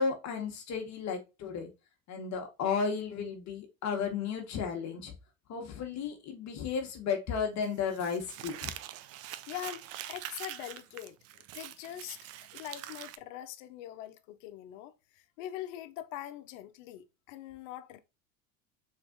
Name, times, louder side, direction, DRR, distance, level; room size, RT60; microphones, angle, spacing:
voice 1, 0.0-1.7 2.1-5.1 5.5-8.7, left 6 dB, 45° left, 1.2 m, -33 dB
Crumpling crinkling, 7.6-13.2, right 12 dB, 40° right, 0.4 m, -44 dB
voice 2, 9.5-11.2 11.5-12.2 12.5-18.0, left 12 dB, 70° left, 0.7 m, -43 dB
3.6 x 3.2 x 3.9 m
hypercardioid pair, 100°, 40 cm